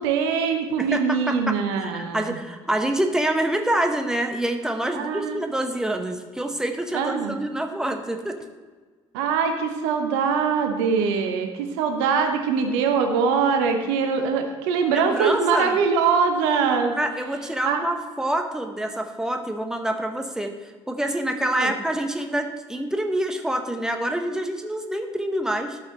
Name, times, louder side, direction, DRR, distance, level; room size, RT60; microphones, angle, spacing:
voice 1, 0.0-2.4 4.9-5.4 6.9-7.4 9.1-16.9 17.6-17.8 21.6-21.7, right 5 dB, 70° right, 5 dB, 0.9 m, -23 dB
voice 2, 0.8-1.6 1.8-8.4 14.9-15.8 17.0-25.8, right 1 dB, 5° right, 5 dB, 1.1 m, -26 dB
12.5 x 5.7 x 4.0 m, 1.4 s
figure-of-eight pair, 50°, 16 cm